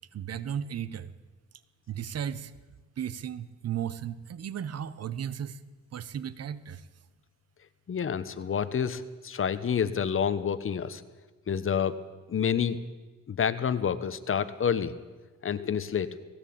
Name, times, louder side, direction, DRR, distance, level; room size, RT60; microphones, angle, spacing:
voice 1, 0.1-1.1 1.9-2.5 3.0-5.6 5.9-6.8, right 9 dB, 55° right, 16 dB, 1.1 m, -35 dB
voice 2, 7.9-11.0 11.5-12.0 12.3-12.8 13.3-14.9 15.4-16.1, left 7 dB, 45° left, 14 dB, 1.2 m, -28 dB
18.5 x 17.0 x 8.7 m, 1.3 s
cardioid pair, 90°, 30 cm